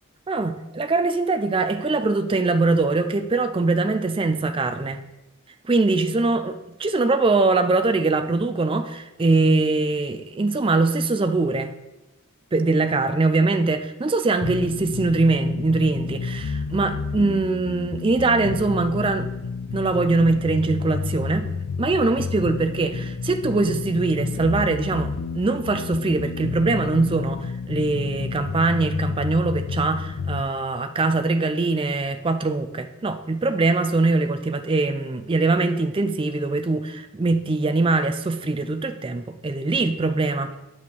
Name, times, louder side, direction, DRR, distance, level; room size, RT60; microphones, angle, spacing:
voice 1, 0.3-5.0 5.7-6.5 6.8-11.7 12.5-19.3 19.7-21.4 21.8-40.5, right 3 dB, 25° right, 8 dB, 0.4 m, -22 dB
sound 1, 14.4-30.4, left 5 dB, 80° left, 0.4 m, -30 dB
9.1 x 7.0 x 3.2 m, 1.0 s
head